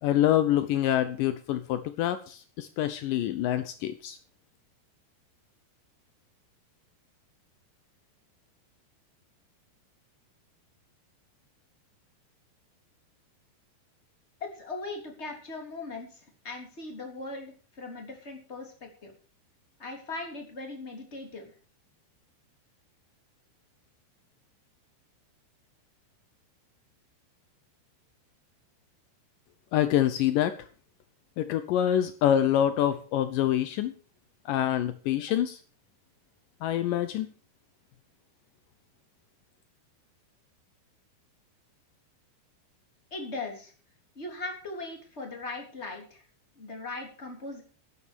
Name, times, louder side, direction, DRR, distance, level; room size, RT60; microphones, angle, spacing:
voice 1, 0.0-4.2 29.7-30.5 31.4-33.9 34.5-35.6 36.6-37.3, left 11 dB, 85° left, 11 dB, 1.9 m, -26 dB
voice 2, 14.4-19.1 19.8-21.5 43.1-43.7 44.1-46.2 46.5-47.6, left 3 dB, 15° left, 2 dB, 3.0 m, -39 dB
11.0 x 11.0 x 6.3 m, 0.39 s
omnidirectional pair, 5.0 m